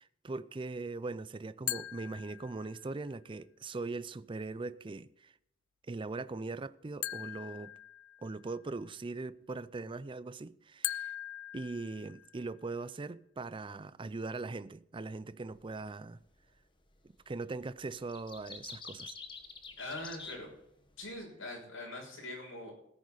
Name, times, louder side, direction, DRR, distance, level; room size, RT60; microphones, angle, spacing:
voice 1, 0.0-5.3 5.9-7.7 8.2-11.1 11.5-16.2 17.0-19.1, right 3 dB, 25° right, 0.4 m, -40 dB
sound 1, 1.7-3.0 7.0-8.6 10.8-12.5, left 14 dB, 70° left, 0.4 m, -41 dB
sound 2, 15.5-15.7 16.9-17.3 17.6-21.2, left 4 dB, 25° left, 1.3 m, -47 dB
voice 2, 19.8-20.5 21.0-22.7, left 2 dB, 90° left, 6.5 m, -42 dB
17.5 x 9.9 x 4.0 m
head